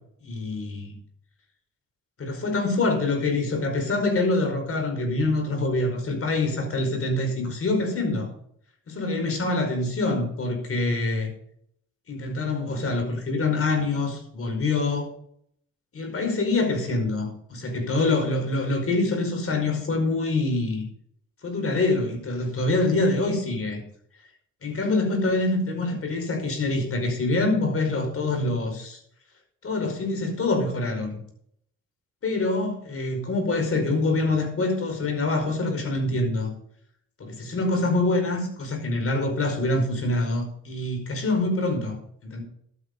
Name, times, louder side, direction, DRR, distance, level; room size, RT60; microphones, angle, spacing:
voice 1, 0.2-1.0 2.2-8.3 8.9-11.3 12.1-15.1 15.9-20.9 21.4-23.8 24.6-29.0 29.6-31.2 32.2-36.5 37.2-42.4, left 2 dB, 50° left, 4 dB, 5.1 m, -25 dB
12.0 x 9.3 x 5.4 m, 0.68 s
cardioid pair, 90°, 30 cm